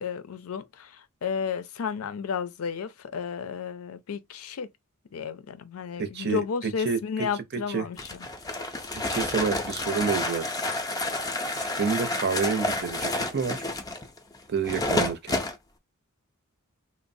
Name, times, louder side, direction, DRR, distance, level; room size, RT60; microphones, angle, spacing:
voice 1, 0.0-4.7 5.1-8.3, left 6 dB, 85° left, 0.5 m, -32 dB
voice 2, 6.0-6.4 6.8-7.0 7.7-7.8 8.9-10.4 11.6-13.6 14.5-15.4, right 5 dB, 50° right, 0.6 m, -28 dB
sound 1, 8.0-15.6, left 2 dB, 15° left, 0.4 m, -30 dB
2.9 x 2.0 x 2.6 m
head